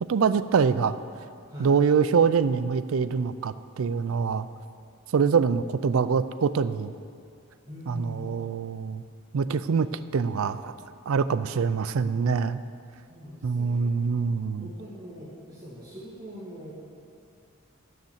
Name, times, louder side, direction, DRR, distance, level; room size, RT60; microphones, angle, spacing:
voice 1, 0.1-0.9 1.6-4.5 5.1-6.9 7.9-9.0 9.3-10.8 11.1-12.6 13.4-14.7, right 5 dB, 75° right, 13 dB, 0.4 m, -24 dB
voice 2, 1.5-1.8 7.6-8.4 13.1-14.0 14.6-16.7, left 1 dB, 20° right, -10 dB, 2.1 m, -42 dB
11.5 x 6.5 x 7.2 m, 2.4 s
head